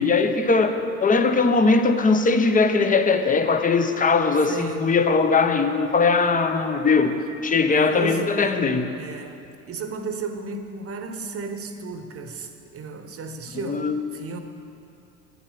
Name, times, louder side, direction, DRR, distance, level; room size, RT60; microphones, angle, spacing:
voice 1, 0.0-7.1 7.4-8.9 13.6-14.0, left 4 dB, 20° left, 8 dB, 0.8 m, -20 dB
voice 2, 4.5-4.9 7.6-8.7 9.0-14.4, right 4 dB, 35° right, 7 dB, 1.1 m, -34 dB
9.6 x 9.6 x 5.8 m, 2.6 s
hypercardioid pair, 80°, 42 cm